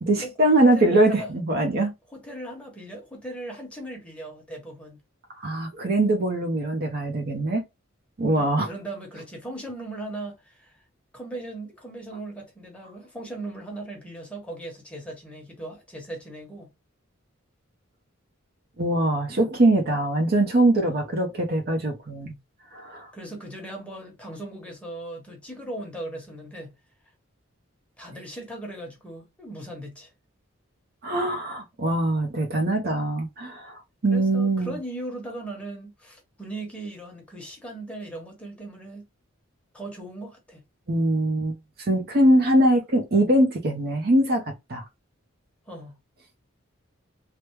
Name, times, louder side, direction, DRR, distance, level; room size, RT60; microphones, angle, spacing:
voice 1, 0.0-1.9 5.4-7.6 8.2-8.7 18.8-22.4 22.7-23.1 31.0-34.8 40.9-44.8, right 1 dB, 50° right, 0.7 m, -22 dB
voice 2, 0.6-1.3 2.1-5.0 8.3-10.8 11.1-16.7 20.9-21.0 23.1-26.8 28.0-30.1 34.1-39.0 39.7-40.6 45.7-46.0, right 1 dB, 5° left, 1.2 m, -38 dB
3.3 x 2.1 x 3.0 m
head